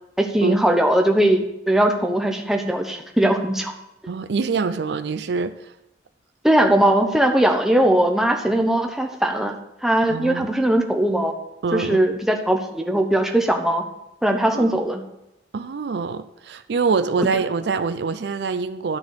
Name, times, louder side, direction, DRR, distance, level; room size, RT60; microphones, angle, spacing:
voice 1, 0.2-3.7 6.4-9.6 9.8-11.3 11.7-13.8 14.2-15.0, right 1 dB, ahead, 3 dB, 0.8 m, -20 dB
voice 2, 4.1-5.7 10.1-10.5 11.6-12.0 14.5-14.7 15.5-19.0, right 4 dB, 65° right, 12 dB, 0.4 m, -25 dB
12.0 x 4.3 x 6.1 m, 0.88 s
head